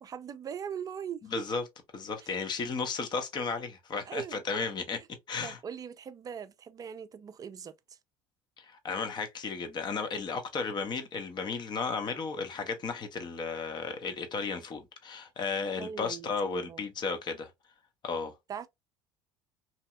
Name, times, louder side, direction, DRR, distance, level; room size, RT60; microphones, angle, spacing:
voice 1, 0.0-1.4 4.1-4.4 5.4-8.0 15.8-16.8 18.5-18.7, right 8 dB, 30° right, 0.4 m, -40 dB
voice 2, 1.2-1.6 1.9-5.0 5.3-5.6 8.6-17.5 18.0-18.3, left 4 dB, 40° left, 0.9 m, -34 dB
2.8 x 2.7 x 2.2 m
hypercardioid pair, 70°, 11 cm